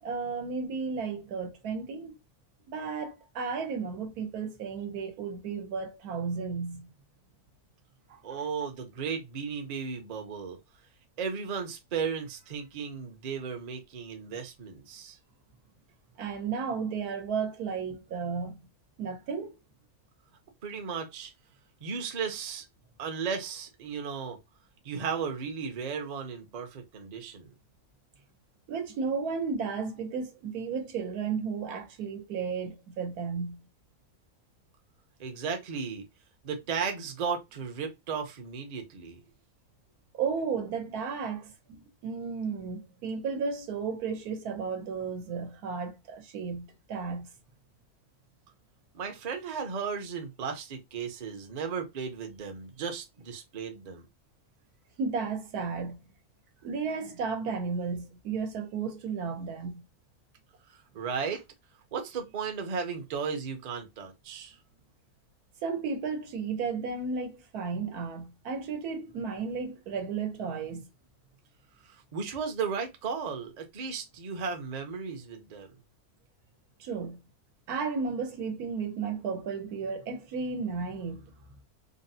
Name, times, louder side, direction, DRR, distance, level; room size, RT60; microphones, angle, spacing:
voice 1, 0.0-2.1 2.7-6.9 8.1-8.5 16.2-18.6 19.0-19.6 28.7-33.6 40.1-47.3 55.0-56.0 56.6-59.8 65.6-70.9 76.8-77.2 77.7-81.3, right 5 dB, 85° right, 1.3 m, -33 dB
voice 2, 8.2-10.6 11.2-15.2 20.6-21.3 21.8-22.6 23.0-24.4 24.8-27.5 35.2-36.0 36.4-39.2 48.9-54.1 60.9-61.4 61.9-64.5 72.1-75.7, right 6 dB, 45° right, 0.5 m, -35 dB
3.8 x 2.0 x 2.6 m
omnidirectional pair, 1.6 m